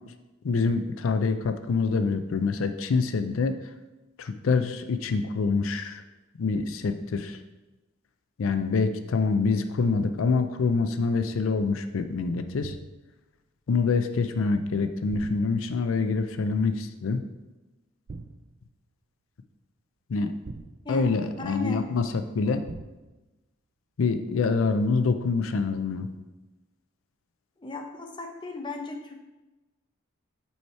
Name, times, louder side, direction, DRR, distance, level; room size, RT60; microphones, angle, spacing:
voice 1, 0.4-3.6 4.2-6.0 6.4-7.4 8.4-12.8 13.7-17.2 20.1-20.3 20.9-22.7 24.0-26.1, left 4 dB, 75° left, 9 dB, 0.4 m, -26 dB
sound 1, 12.6-13.1 15.1-15.9 18.1-18.6 20.4-21.3 22.7-23.2, right 3 dB, 35° right, 0.3 m, -42 dB
voice 2, 21.4-21.8 27.6-29.2, left 3 dB, 20° left, 3 dB, 0.6 m, -36 dB
5.4 x 4.8 x 4.4 m, 1.1 s
head